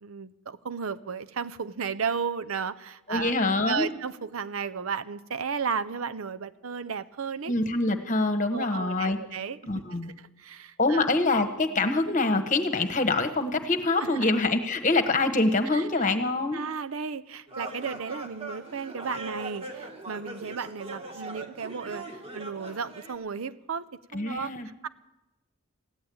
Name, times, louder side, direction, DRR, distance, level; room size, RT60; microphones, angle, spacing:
voice 1, 0.0-3.3 3.7-7.5 8.5-9.6 9.9-11.1 14.0-14.3 15.7-15.8 16.5-23.9 24.1-24.9, right 6 dB, 75° right, 12 dB, 0.6 m, -34 dB
voice 2, 3.1-3.9 7.5-9.2 9.7-10.1 10.8-16.6 24.1-24.7, left 2 dB, 35° left, 8 dB, 1.2 m, -25 dB
sound 1, 17.5-23.1, right 2 dB, 30° right, 1.6 m, -40 dB
15.5 x 10.5 x 8.6 m, 0.97 s
head